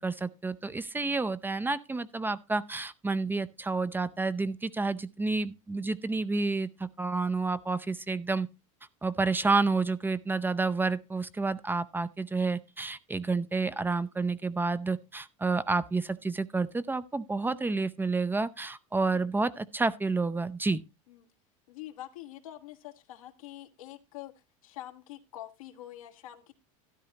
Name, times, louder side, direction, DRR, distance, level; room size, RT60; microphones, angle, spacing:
voice 1, 0.0-8.5 9.0-20.8, right 3 dB, 10° right, 0.5 m, -30 dB
voice 2, 19.0-19.5 21.1-21.3 21.7-26.5, left 13 dB, 90° left, 1.5 m, -46 dB
13.0 x 11.0 x 2.9 m
supercardioid pair, 110°, 17 cm